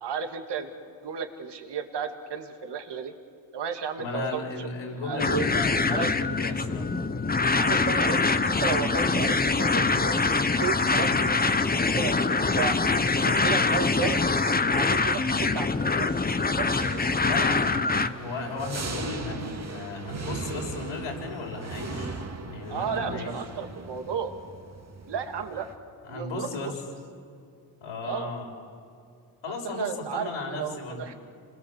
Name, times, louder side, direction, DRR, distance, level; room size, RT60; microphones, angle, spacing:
voice 1, 0.0-0.7 1.0-3.1 3.5-4.7 5.0-5.5 5.9-6.3 7.5-10.2 10.6-12.8 13.1-14.2 14.7-16.1 16.6-16.8 22.7-24.3 25.1-25.7 26.1-26.7 28.0-28.3 29.6-31.1, right 6 dB, 55° right, 6 dB, 2.5 m, -33 dB
voice 2, 4.0-6.9 17.2-23.3 26.0-26.7 27.8-28.5 29.4-31.0, left 3 dB, 75° left, 0 dB, 6.3 m, -35 dB
sound 1, 5.2-18.1, left 3 dB, 20° left, 1.2 m, -24 dB
sound 2, 16.0-25.8, right 4 dB, 35° right, 2.4 m, -39 dB
28.0 x 21.0 x 7.5 m, 2.5 s
supercardioid pair, 70°, 48 cm